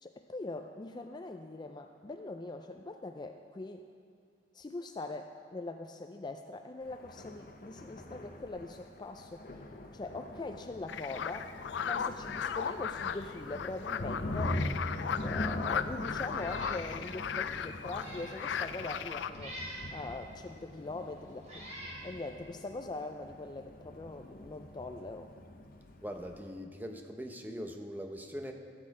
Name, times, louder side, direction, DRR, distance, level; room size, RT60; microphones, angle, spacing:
voice 1, 0.0-3.9 4.5-9.6 9.9-11.5 11.8-14.7 15.2-21.6 22.0-25.3, left 2 dB, 25° left, 5 dB, 0.4 m, -42 dB
Thunder, 6.8-26.6, left 1 dB, 55° left, 0.8 m, -43 dB
sound 1, 10.9-19.3, left 7 dB, 90° left, 0.4 m, -36 dB
Meow, 16.3-16.8 17.2-17.3 17.8-18.4 19.3-19.9 20.7-20.8 21.4-22.0, equal, 40° right, 3.1 m, -45 dB
voice 2, 26.0-28.5, equal, 10° right, 3 dB, 0.8 m, -41 dB
14.0 x 8.7 x 4.8 m, 2.2 s
head